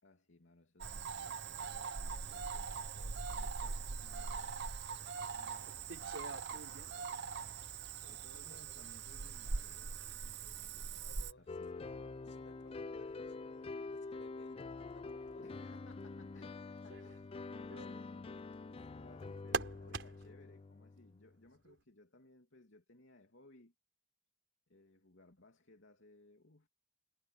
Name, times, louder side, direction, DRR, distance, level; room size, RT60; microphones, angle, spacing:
voice 1, 0.0-7.8 8.1-11.7 15.4-17.3 17.6-23.7 24.7-26.7, left 2 dB, 85° left, 2.8 m, -63 dB
Cricket / Frog, 0.8-11.3, right 5 dB, 60° right, 0.9 m, -42 dB
sound 1, 2.2-20.4 21.5-21.8, right 4 dB, 80° right, 3.7 m, -51 dB
voice 2, 7.7-8.9 11.0-11.5 12.2-15.5, left 2 dB, 65° left, 8.0 m, -62 dB
sound 2, 11.5-21.3, left 3 dB, 30° left, 0.4 m, -46 dB
head